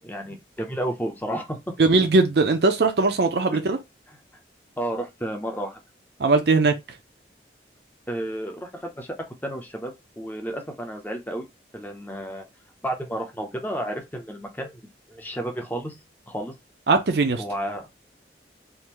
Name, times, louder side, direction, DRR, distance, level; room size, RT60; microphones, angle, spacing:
voice 1, 0.0-1.6 4.1-4.2 4.8-5.8 8.1-9.2 9.4-11.4 11.7-12.4 12.8-14.8 15.1-15.9 16.3-16.5 17.4-17.9, right 1 dB, 10° left, 0.7 m, -31 dB
voice 2, 1.8-3.8 6.2-6.7 16.9-17.4, right 3 dB, 65° right, 0.5 m, -19 dB
3.5 x 2.6 x 3.0 m
head